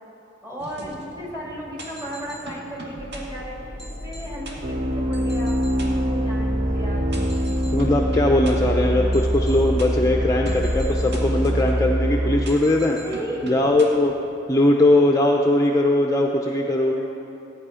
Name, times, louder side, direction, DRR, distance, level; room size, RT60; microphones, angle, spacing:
voice 1, 0.4-3.6 4.0-7.1 13.0-13.6 16.5-17.5, equal, 15° right, -4 dB, 2.5 m, -35 dB
sound 1, 0.6-14.4, equal, 60° right, 1.8 m, -39 dB
sound 2, 2.9-10.4, equal, ahead, 1.2 m, -36 dB
sound 3, 4.6-12.4, right 1 dB, 45° right, 0.7 m, -24 dB
voice 2, 7.7-13.0 13.4-14.1 14.5-16.9, left 1 dB, 15° left, 0 dB, 0.6 m, -20 dB
15.0 x 9.6 x 5.0 m, 2.8 s
head